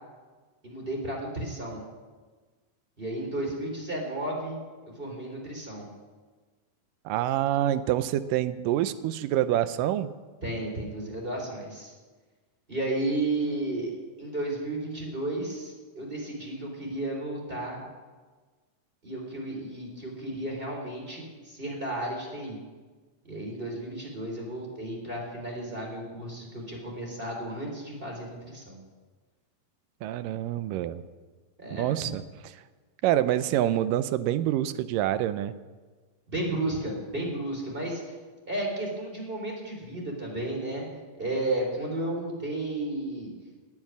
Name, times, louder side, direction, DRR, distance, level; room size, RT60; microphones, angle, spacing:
voice 1, 0.6-1.8 3.0-4.6 4.9-5.9 10.4-11.9 12.7-13.9 14.2-17.8 19.0-22.6 23.2-28.8 31.6-32.1 36.3-38.1 38.5-43.3, right 1 dB, 15° right, -1 dB, 3.7 m, -33 dB
voice 2, 7.1-10.1 30.0-31.0 31.7-32.2 33.0-35.5, right 12 dB, 80° right, 13 dB, 2.2 m, -26 dB
18.5 x 7.3 x 9.5 m, 1.4 s
omnidirectional pair, 4.0 m